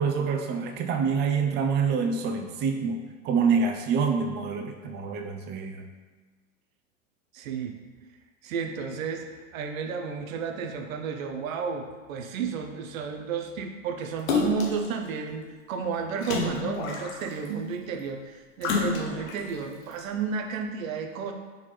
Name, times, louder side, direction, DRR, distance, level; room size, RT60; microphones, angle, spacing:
voice 1, 0.0-3.0 3.2-5.8, right 5 dB, 25° right, 4 dB, 0.4 m, -26 dB
voice 2, 7.3-7.8 8.4-9.2 9.5-21.3, right 6 dB, 85° right, 4 dB, 0.6 m, -32 dB
Splash splatter, 14.3-14.9 16.2-17.5 18.6-19.4 20.0-20.1, left 4 dB, 85° left, 0.8 m, -28 dB
4.2 x 3.8 x 3.1 m, 1.3 s
hypercardioid pair, 110°, 40 cm